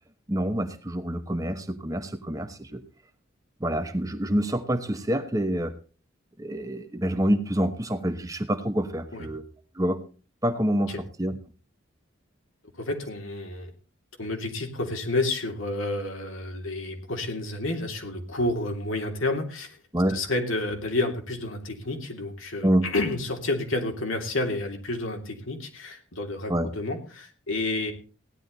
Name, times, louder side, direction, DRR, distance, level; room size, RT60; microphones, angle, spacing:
voice 1, 0.3-2.8 3.6-5.7 6.4-9.4 9.7-10.0 10.4-11.4 19.9-20.2 22.6-22.9 26.5-26.7, right 1 dB, 15° right, 8 dB, 1.0 m, -27 dB
voice 2, 12.8-13.7 14.2-19.8 20.1-27.9, left 2 dB, 80° left, 3 dB, 3.1 m, -30 dB
17.0 x 11.0 x 4.0 m, 0.36 s
head